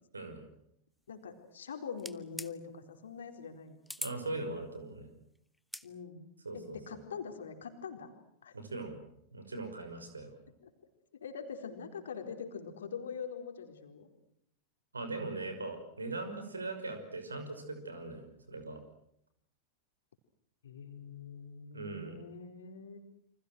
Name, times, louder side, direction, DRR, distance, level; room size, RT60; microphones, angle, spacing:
voice 1, 1.1-3.8 5.8-6.2 6.5-8.1 8.4-8.5 10.6-10.7 11.1-14.1 20.6-23.0, left 6 dB, 65° left, 6 dB, 4.3 m, -43 dB
sound 1, 2.0-2.5 3.9-4.2 5.6-5.9, left 1 dB, 5° left, 1.1 m, -41 dB
voice 2, 4.0-5.1 6.4-6.8 8.5-9.0 9.3-10.4 14.9-18.8 21.7-22.2, right 2 dB, 75° right, 8 dB, 5.7 m, -40 dB
29.0 x 26.0 x 6.3 m, 0.75 s
figure-of-eight pair, 90°, 0 cm